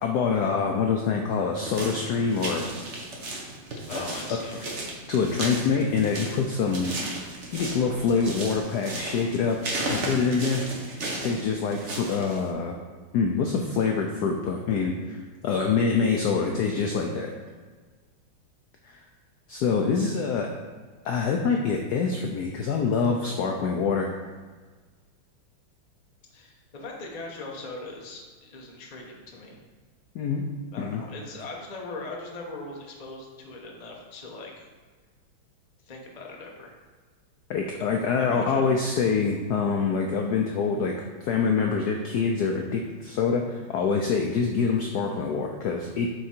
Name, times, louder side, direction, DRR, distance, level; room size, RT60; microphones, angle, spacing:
voice 1, 0.0-2.6 3.9-4.0 4.3-4.4 5.1-6.9 7.5-9.6 9.9-10.6 11.2-12.8 13.1-17.3 19.5-20.5 21.0-24.1 30.1-30.5 30.8-31.0 37.5-40.9 41.2-46.1, left 5 dB, 80° left, 2 dB, 0.9 m, -25 dB
sound 1, 1.7-12.5, right 2 dB, 45° right, 1.1 m, -35 dB
voice 2, 3.8-4.6 26.3-29.6 30.7-34.7 35.8-36.7 38.2-38.6, left 3 dB, 35° left, -1 dB, 0.6 m, -40 dB
7.9 x 3.7 x 4.4 m, 1.4 s
omnidirectional pair, 2.4 m